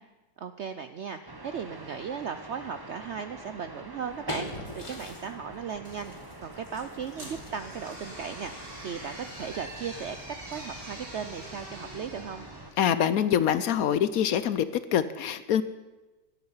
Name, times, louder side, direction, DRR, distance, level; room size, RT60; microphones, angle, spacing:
voice 1, 0.4-6.1 6.4-12.5, right 6 dB, 70° right, 10 dB, 0.6 m, -37 dB
sound 1, 1.3-12.7, right 2 dB, 20° right, 0.8 m, -46 dB
sound 2, 3.8-11.9, left 1 dB, 20° left, 1.2 m, -45 dB
sound 3, 7.1-13.3, right 1 dB, 85° right, 5.2 m, -45 dB
voice 2, 12.8-15.6, left 9 dB, 70° left, 14 dB, 0.9 m, -25 dB
16.5 x 12.5 x 5.6 m, 1.2 s
omnidirectional pair, 1.8 m